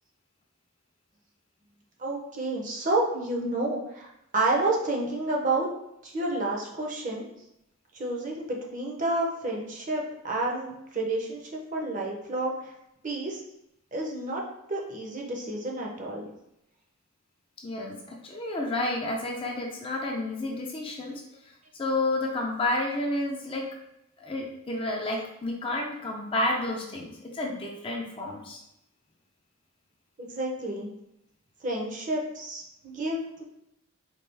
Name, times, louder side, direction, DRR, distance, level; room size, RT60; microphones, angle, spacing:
voice 1, 2.0-5.7 6.0-7.3 7.9-12.7 13.0-13.4 13.9-14.4 14.7-16.3 30.2-30.9 31.6-33.4, right 2 dB, 35° right, -1 dB, 0.6 m, -30 dB
voice 2, 17.6-21.2 21.8-23.7 24.2-28.6, left 2 dB, 25° left, 0 dB, 0.4 m, -30 dB
4.3 x 2.3 x 3.3 m, 0.82 s
head